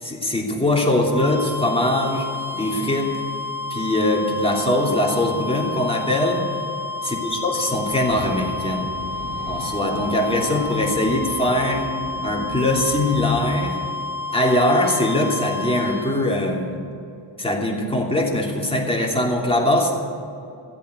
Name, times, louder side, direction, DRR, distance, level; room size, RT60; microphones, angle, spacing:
voice 1, 0.0-2.3 2.5-3.1 3.7-6.4 7.0-8.9 9.5-11.8 12.2-13.8 14.3-16.8 17.4-19.9, left 1 dB, 10° left, -1 dB, 2.9 m, -21 dB
sound 1, 1.0-16.3, left 3 dB, 55° right, 2.7 m, -30 dB
sound 2, 7.7-13.9, right 1 dB, 85° right, 4.5 m, -36 dB
14.5 x 8.3 x 9.2 m, 2.6 s
cardioid pair, 80°, 45 cm